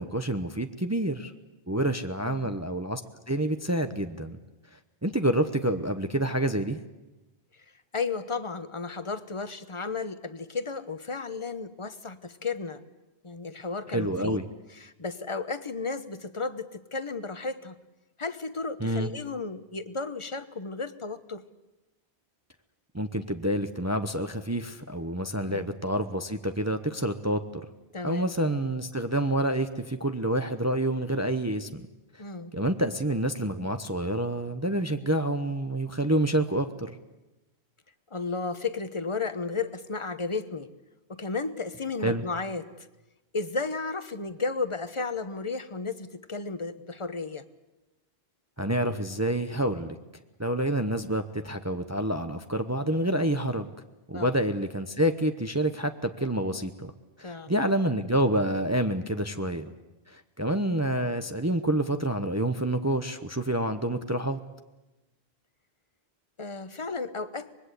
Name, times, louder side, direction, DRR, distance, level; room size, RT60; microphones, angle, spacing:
voice 1, 0.0-1.3 1.7-3.0 3.3-4.4 5.0-6.8 13.9-14.5 18.8-19.1 22.9-27.6 28.0-31.9 32.5-37.0 42.0-42.2 48.6-50.0 50.4-53.7 54.1-56.9 57.2-59.7 60.1-64.4, right 1 dB, 15° right, 7 dB, 0.8 m, -28 dB
voice 2, 2.2-2.5 7.9-12.8 13.2-14.4 14.7-17.8 18.2-21.4 25.4-25.6 27.9-28.3 32.2-32.5 38.1-40.7 41.1-42.9 43.3-47.4 49.7-49.8 54.1-54.4 57.2-57.5 66.4-67.5, left 4 dB, 30° left, 11 dB, 1.0 m, -33 dB
25.0 x 21.0 x 8.3 m, 1.0 s
omnidirectional pair, 1.1 m